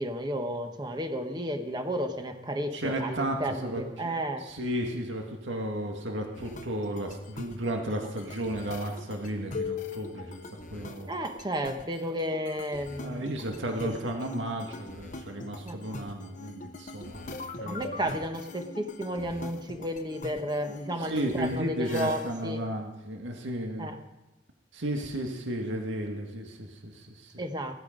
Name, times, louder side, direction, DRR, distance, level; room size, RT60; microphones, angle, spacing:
voice 1, 0.0-4.5 11.1-13.2 13.8-13.9 15.6-15.8 17.6-22.6 23.8-24.0 27.4-27.7, equal, 25° right, 6 dB, 1.3 m, -32 dB
voice 2, 2.7-4.1 4.4-11.1 13.0-17.9 21.1-24.0 24.7-27.4, right 1 dB, 85° right, 2 dB, 2.0 m, -34 dB
sound 1, 6.3-22.5, left 3 dB, 45° left, 1.0 m, -42 dB
17.0 x 13.0 x 5.2 m, 1.0 s
head